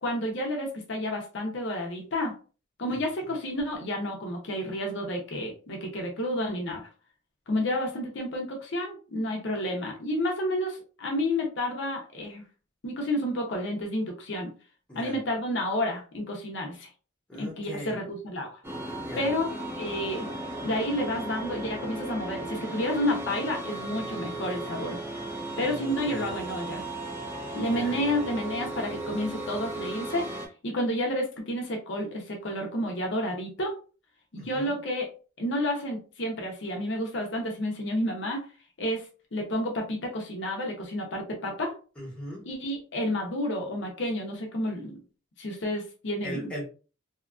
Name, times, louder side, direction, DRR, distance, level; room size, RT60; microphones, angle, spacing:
voice 1, 0.0-2.3 2.8-6.9 7.5-12.4 12.8-14.5 14.9-16.9 17.3-18.6 19.2-19.5 19.8-20.3 20.6-25.0 25.6-26.9 27.5-30.3 30.6-33.8 34.3-35.1 35.4-38.4 38.8-41.8 42.5-45.0 45.4-46.5, left 1 dB, 60° left, 1 dB, 0.6 m, -30 dB
voice 2, 17.3-18.0 19.0-19.3 25.6-26.3 27.5-28.2 34.4-34.7 42.0-42.5 46.2-46.6, equal, 5° left, -5 dB, 1.0 m, -39 dB
sound 1, 18.6-30.5, right 2 dB, 10° right, 0.5 m, -36 dB
2.8 x 2.3 x 2.4 m, 0.36 s
head